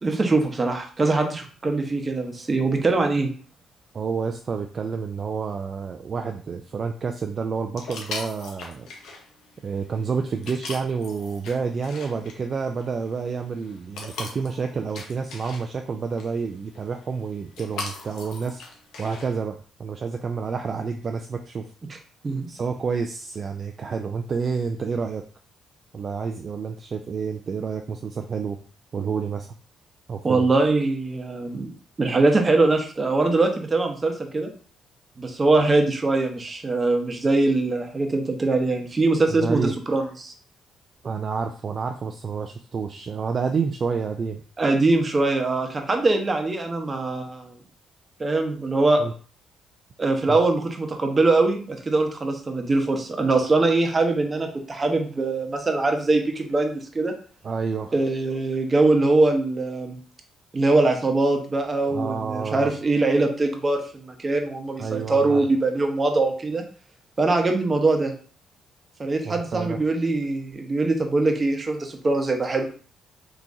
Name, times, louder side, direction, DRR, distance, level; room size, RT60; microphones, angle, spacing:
voice 1, 0.0-3.3 22.2-22.5 30.2-31.7 32.0-34.5 35.2-40.3 44.6-47.6 48.2-49.0 50.0-57.1 57.9-60.0 60.5-66.6 67.2-68.1 69.0-72.7, right 2 dB, 30° right, 4 dB, 0.7 m, -22 dB
voice 2, 3.9-8.9 9.6-21.7 22.5-25.2 25.9-28.6 28.9-29.5 30.1-30.5 39.4-39.8 41.0-44.4 49.0-49.1 50.3-50.4 57.4-57.9 61.9-62.7 64.8-65.4 69.2-69.8, right 5 dB, 45° right, 5 dB, 0.3 m, -29 dB
sound 1, 7.8-19.4, left 3 dB, 80° left, 0.8 m, -40 dB
3.6 x 2.9 x 2.6 m, 0.41 s
cardioid pair, 90°, 0 cm